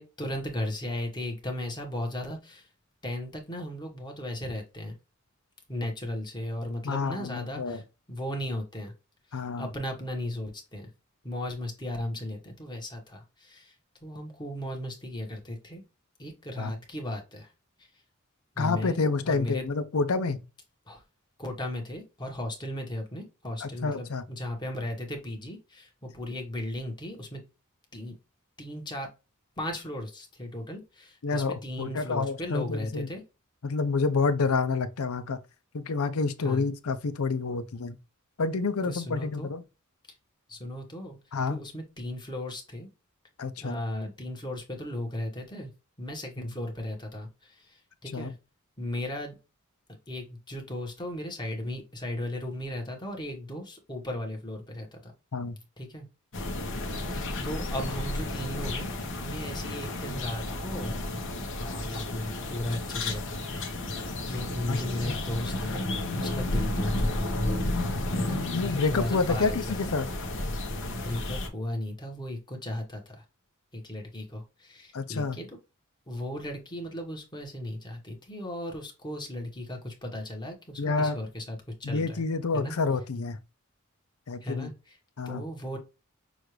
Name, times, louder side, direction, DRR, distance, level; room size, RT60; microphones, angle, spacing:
voice 1, 0.0-2.7 3.0-5.0 5.7-7.8 8.1-8.9 9.6-10.9 11.2-13.7 14.0-15.8 16.2-17.5 18.5-19.7 20.9-21.0 21.4-27.4 27.9-28.1 28.6-29.1 29.6-33.2 36.4-36.6 38.8-39.5 40.5-41.2 41.5-42.9 43.6-45.7 46.0-48.3 48.8-49.3 50.1-55.1 55.8-56.1 57.1-58.9 59.2-61.2 61.5-65.9 66.2-67.4 68.1-69.8 70.9-73.2 73.7-75.5 76.1-82.2 82.5-82.7 84.4-85.0 85.2-85.8, left 1 dB, 20° left, 1.3 m, -36 dB
voice 2, 6.8-7.8 9.3-9.7 16.6-16.7 18.6-20.4 23.6-24.2 31.2-33.1 33.6-35.4 35.7-38.0 38.4-39.6 41.3-41.6 43.4-43.8 46.4-46.5 48.1-48.3 55.3-55.6 64.7-64.8 68.5-70.1 74.9-75.4 80.8-81.2 81.8-83.4 84.3-84.7 85.2-85.4, left 4 dB, 90° left, 0.6 m, -28 dB
sound 1, 56.3-71.5, left 2 dB, 60° left, 1.1 m, -32 dB
6.3 x 2.5 x 3.2 m
head